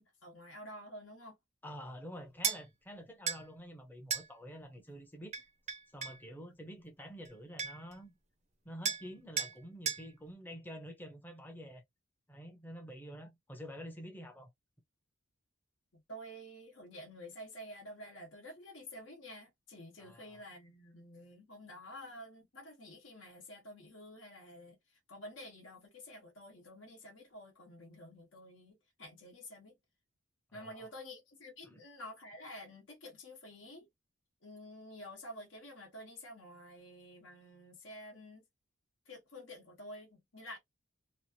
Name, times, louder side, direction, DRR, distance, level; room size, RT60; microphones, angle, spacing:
voice 1, 0.0-1.4 15.9-29.7 30.5-33.9 34.4-38.4 39.0-40.6, left 1 dB, 65° left, 1.0 m, -50 dB
voice 2, 1.6-5.3 5.9-8.1 8.6-11.8 12.3-14.5 20.0-20.4 30.5-30.9 31.6-31.8, equal, 10° left, 0.7 m, -48 dB
sound 1, 2.4-2.6 3.3-3.4 4.1-4.3 5.3-6.2 7.2-7.3 7.6-7.9 8.8-9.1 9.4-9.5 9.9-10.0, right 7 dB, 35° right, 0.6 m, -35 dB
3.0 x 2.4 x 2.7 m
head